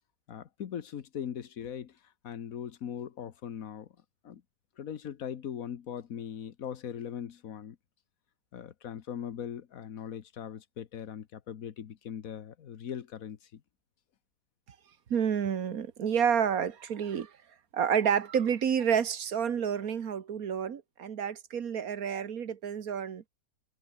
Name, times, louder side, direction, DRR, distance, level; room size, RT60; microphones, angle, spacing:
voice 1, 0.3-3.9 4.2-4.4 4.8-7.8 8.5-13.6, left 9 dB, 70° left, 1.5 m, -40 dB
voice 2, 15.1-17.3 17.7-23.2, right 7 dB, 75° right, 1.8 m, -29 dB
omnidirectional pair, 1.5 m